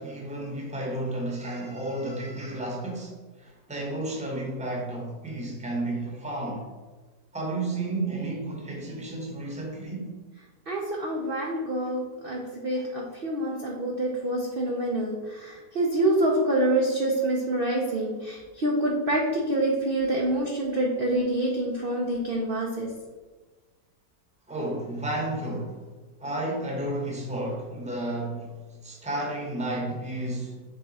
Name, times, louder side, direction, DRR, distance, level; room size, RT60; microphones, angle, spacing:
voice 1, 0.0-6.7 7.3-10.1 24.5-25.9 26.2-30.6, right 1 dB, 5° right, -1 dB, 1.0 m, -32 dB
voice 2, 10.7-22.9, right 1 dB, 45° right, -2 dB, 0.7 m, -26 dB
6.8 x 3.7 x 4.2 m, 1.3 s
omnidirectional pair, 1.9 m